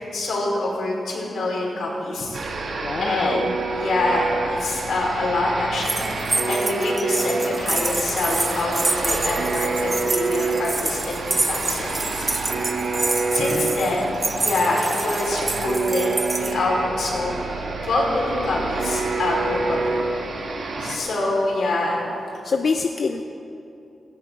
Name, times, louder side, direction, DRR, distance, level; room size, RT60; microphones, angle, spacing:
voice 1, 0.1-2.4 3.0-3.5 3.7-12.3 13.3-17.4 17.8-20.0 20.8-22.0, left 2 dB, 80° left, -3 dB, 4.9 m, -25 dB
sound 1, 2.3-21.0, right 3 dB, 70° right, 2.2 m, -27 dB
voice 2, 2.8-3.6 12.6-12.7 13.5-13.7 20.8-21.0 22.4-23.2, left 4 dB, 50° left, 6 dB, 0.6 m, -26 dB
sound 2, 5.8-16.5, right 3 dB, 25° right, 1.0 m, -27 dB
17.5 x 17.0 x 4.7 m, 2.8 s
wide cardioid pair, 130°, 0 cm